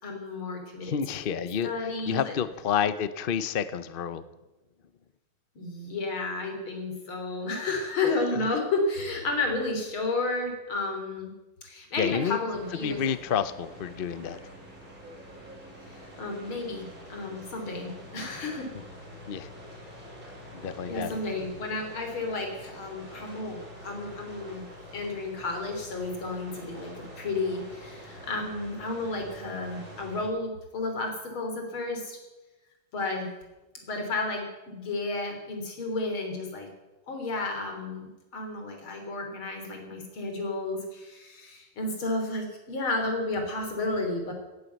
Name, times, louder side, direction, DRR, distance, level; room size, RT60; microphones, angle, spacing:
voice 1, 0.0-2.4 5.6-11.3 11.6-13.0 15.9-18.7 20.9-24.6 24.9-32.2 32.9-33.3 33.8-36.7 37.1-44.3, left 2 dB, 85° left, 3 dB, 4.1 m, -32 dB
voice 2, 0.8-4.2 12.0-12.4 12.8-14.4 19.3-19.5 20.5-21.2, left 8 dB, 65° left, 13 dB, 0.5 m, -29 dB
sound 1, 12.5-30.3, equal, 40° right, 6.1 m, -46 dB
18.0 x 9.6 x 8.1 m, 1.1 s
omnidirectional pair, 2.2 m